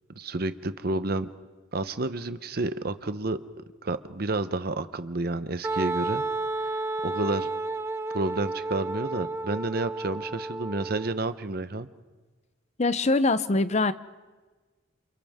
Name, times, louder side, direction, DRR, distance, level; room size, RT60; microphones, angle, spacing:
voice 1, 0.2-1.3 1.7-6.2 7.0-7.5 8.1-11.9, right 2 dB, 50° right, 12 dB, 0.8 m, -30 dB
Wind instrument woodwind instrument, 5.6-11.3, right 3 dB, 15° right, 0.6 m, -32 dB
voice 2, 12.8-13.9, left 3 dB, 35° left, 14 dB, 0.6 m, -23 dB
28.5 x 28.5 x 3.6 m, 1.3 s
head